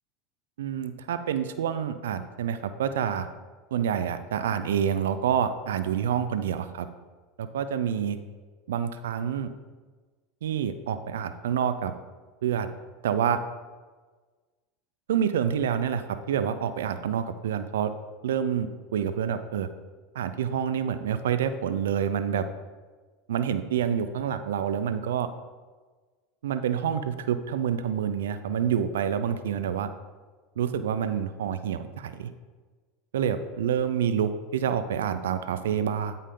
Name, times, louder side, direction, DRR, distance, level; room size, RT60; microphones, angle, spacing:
voice 1, 0.6-3.3 3.7-6.9 7.4-8.2 8.7-9.5 10.4-11.9 12.4-12.7 13.0-13.4 15.1-17.9 18.2-19.7 20.1-22.4 23.3-25.3 26.4-29.9 30.6-32.3 33.1-36.2, right 8 dB, 85° right, 11 dB, 0.4 m, -27 dB
8.4 x 5.4 x 3.7 m, 1.4 s
supercardioid pair, 105°, 0 cm